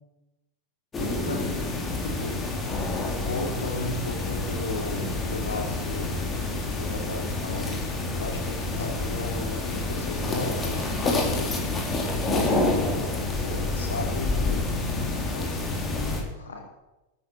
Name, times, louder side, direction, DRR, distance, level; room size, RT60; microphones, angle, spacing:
sound 1, 0.9-16.2, left 2 dB, 20° left, 3.1 m, -28 dB
voice 1, 1.0-1.4 2.0-2.4 3.2-6.1 6.7-11.5 12.3-12.8 13.4-14.7 15.3-15.9 16.3-16.6, left 3 dB, 70° left, 2 dB, 3.2 m, -35 dB
13.0 x 9.1 x 7.2 m, 1.0 s
figure-of-eight pair, 90°, 0 cm